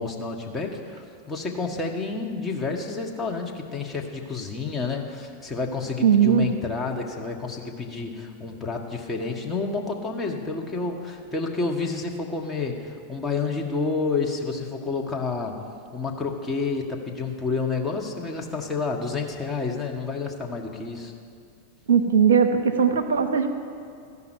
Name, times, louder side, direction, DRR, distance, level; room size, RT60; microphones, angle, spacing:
voice 1, 0.0-15.6 15.9-21.1, left 4 dB, 15° left, -1 dB, 1.5 m, -29 dB
voice 2, 6.0-6.5 21.9-23.5, right 7 dB, 65° right, 6 dB, 0.8 m, -19 dB
14.0 x 5.7 x 9.6 m, 2.2 s
figure-of-eight pair, 90°, 0 cm